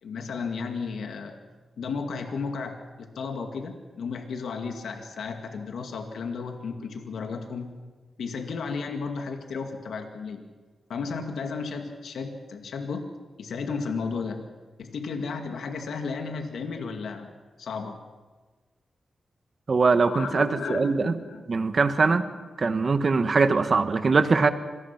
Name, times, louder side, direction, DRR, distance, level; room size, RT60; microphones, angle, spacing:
voice 1, 0.0-1.3 1.8-7.8 8.2-10.4 10.9-13.1 13.4-14.4 14.8-17.3 17.6-18.0 19.9-21.4, left 5 dB, 90° left, 5 dB, 2.2 m, -33 dB
voice 2, 19.7-21.1 21.5-22.3 22.6-24.5, right 4 dB, 45° right, 10 dB, 1.3 m, -22 dB
26.5 x 19.0 x 5.9 m, 1.3 s
wide cardioid pair, 105°, 0 cm